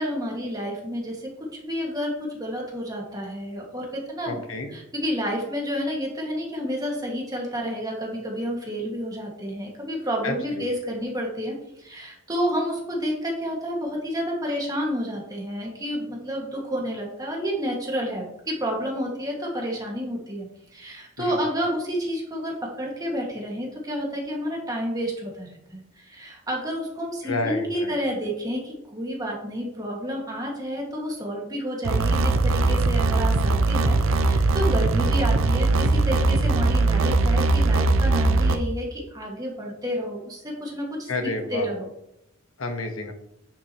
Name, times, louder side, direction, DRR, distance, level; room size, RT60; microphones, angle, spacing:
voice 1, 0.0-4.4 4.7-34.0 34.2-41.9, equal, 20° right, -2 dB, 2.0 m, -30 dB
voice 2, 4.3-4.7 10.2-10.7 21.2-21.4 27.2-28.0 41.1-41.7 42.6-43.1, left 2 dB, 90° left, 5 dB, 1.3 m, -30 dB
sound 1, 31.8-38.6, right 2 dB, 80° right, 0.7 m, -20 dB
9.5 x 7.4 x 3.1 m, 0.81 s
head